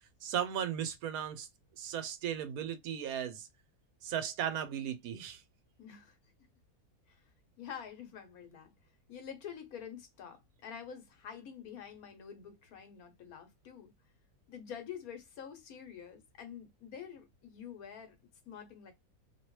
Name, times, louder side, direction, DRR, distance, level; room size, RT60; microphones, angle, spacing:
voice 1, 0.2-1.5 1.8-3.5 4.0-5.4, right 9 dB, 75° right, 1.0 m, -36 dB
voice 2, 5.8-6.2 7.1-7.2 7.6-8.7 9.1-13.9 14.5-18.1 18.5-18.9, left 8 dB, 70° left, 1.3 m, -47 dB
2.9 x 2.8 x 3.0 m
omnidirectional pair, 1.6 m